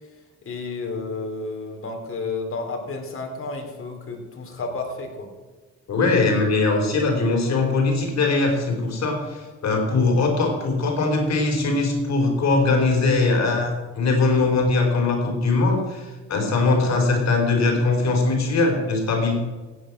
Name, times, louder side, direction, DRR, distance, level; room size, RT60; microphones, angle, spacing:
voice 1, 0.5-5.3, left 3 dB, 45° left, 2 dB, 3.8 m, -31 dB
voice 2, 5.9-13.7 14.0-19.3, left 3 dB, 60° left, 2 dB, 4.2 m, -21 dB
16.0 x 9.3 x 6.1 m, 1.3 s
cardioid pair, 90°, 30 cm